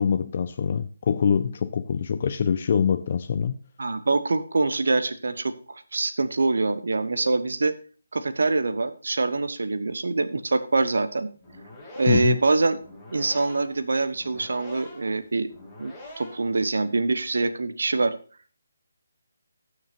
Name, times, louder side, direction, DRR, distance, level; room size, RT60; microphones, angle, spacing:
voice 1, 0.0-3.6 12.1-12.4, left 7 dB, 40° left, 0.5 m, -24 dB
voice 2, 3.8-5.5 5.9-7.7 8.1-11.3 11.9-12.8 13.1-15.5 15.8-18.1, right 3 dB, 60° right, 1.1 m, -24 dB
sound 1, 11.3-16.6, left 1 dB, 10° left, 2.8 m, -45 dB
19.5 x 6.6 x 2.6 m
figure-of-eight pair, 150°, 0 cm